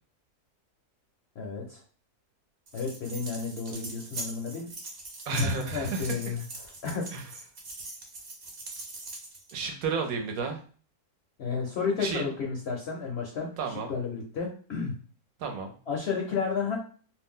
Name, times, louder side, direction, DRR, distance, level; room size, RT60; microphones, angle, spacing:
voice 1, 1.4-1.8 2.7-4.7 5.3-6.4 6.8-7.1 11.4-13.5 13.9-14.9 15.9-16.8, left 5 dB, 65° left, -1 dB, 0.7 m, -32 dB
sound 1, 2.7-9.6, right 2 dB, 50° right, 0.8 m, -42 dB
voice 2, 5.3-6.4 7.1-7.2 9.5-10.6 12.0-12.3 13.6-13.9 15.4-15.7, right 3 dB, 70° right, 3 dB, 1.0 m, -31 dB
2.6 x 2.1 x 3.6 m, 0.41 s
omnidirectional pair, 1.7 m